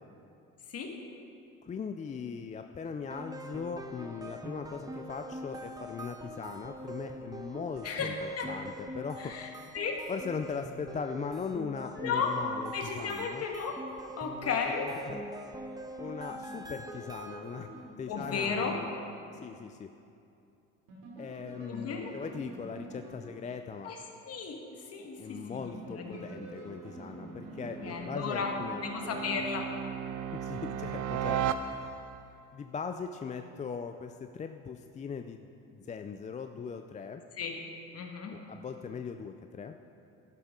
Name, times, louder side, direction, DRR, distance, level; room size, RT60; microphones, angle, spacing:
voice 1, 1.6-9.3 10.1-13.4 14.8-15.2 16.0-17.7 18.0-18.9 19.4-19.9 21.2-23.9 25.2-29.4 30.3-31.5 32.5-37.2 38.3-39.8, left 6 dB, 25° left, 6 dB, 0.4 m, -39 dB
sound 1, 3.1-17.8, right 1 dB, 10° right, 0.9 m, -44 dB
voice 2, 9.2-9.5 9.7-10.0 12.0-12.3 12.7-13.8 14.2-14.9 18.1-18.8 21.6-22.1 23.8-24.0 24.2-24.6 24.9-26.3 27.8-28.5 28.8-29.7 30.7-30.8 37.4-37.6 37.9-38.4, left 5 dB, 50° left, 2 dB, 1.7 m, -34 dB
sound 2, 16.3-19.3 20.9-24.1 25.6-28.9, right 2 dB, 90° right, 2.9 m, -48 dB
sound 3, 25.9-32.3, right 8 dB, 70° right, 0.6 m, -37 dB
11.5 x 11.5 x 3.8 m, 2.6 s
cardioid pair, 100°, 31 cm